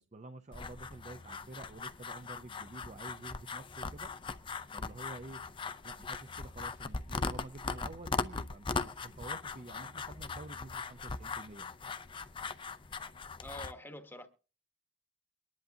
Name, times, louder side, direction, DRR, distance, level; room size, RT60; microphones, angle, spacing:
voice 1, 0.0-4.1 4.7-5.4 5.8-11.7, right 2 dB, 35° right, 0.5 m, -49 dB
sound 1, 0.5-13.7, left 4 dB, 25° left, 0.5 m, -40 dB
voice 2, 13.4-14.3, left 1 dB, 10° left, 1.1 m, -46 dB
23.0 x 10.5 x 2.7 m
head